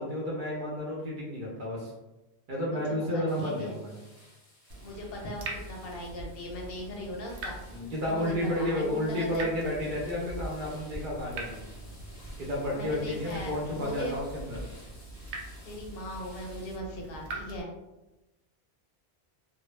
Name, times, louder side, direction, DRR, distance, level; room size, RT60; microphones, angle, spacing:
voice 1, 0.0-1.9 2.5-3.9 7.7-11.6 12.4-14.6, left 1 dB, 55° right, -4 dB, 0.7 m, -31 dB
voice 2, 3.1-3.7 4.8-7.6 8.1-9.4 12.7-14.1 15.6-17.7, left 1 dB, 65° left, 0 dB, 0.7 m, -39 dB
sound 1, 3.3-16.8, left 1 dB, 20° left, 0.5 m, -57 dB
Water tap faucet / Drip, 4.7-17.6, right 2 dB, 90° right, 0.9 m, -43 dB
sound 2, 9.4-14.8, equal, 20° right, 0.8 m, -48 dB
2.2 x 2.0 x 3.0 m, 1.0 s
omnidirectional pair, 1.1 m